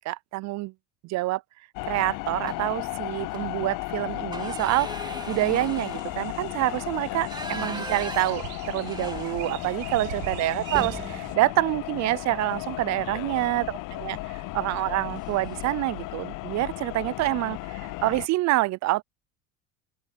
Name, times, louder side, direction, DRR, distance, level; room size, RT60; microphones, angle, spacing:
voice 1, 0.1-0.7 1.0-1.4 1.9-4.9 5.3-14.2 14.5-19.0, right 19 dB, 50° right, 0.5 m, -27 dB
sound 1, 1.7-18.3, left 20 dB, 60° left, 0.8 m, -35 dB
sound 2, 2.4-2.9 3.2-3.4 3.8-9.8 10.1-10.2 10.6-12.8 14.1-14.4 14.7-14.9 15.2-15.8, right 2 dB, 10° right, 3.0 m, -40 dB
voice 2, 3.1-3.5 7.0-7.3 9.7-10.2 13.0-13.5 14.0-14.5 17.0-17.5, left 24 dB, 85° left, 6.8 m, -47 dB
sound 3, 5.3-11.4, right 25 dB, 85° right, 5.6 m, -42 dB
open air
supercardioid pair, 105°, 37 cm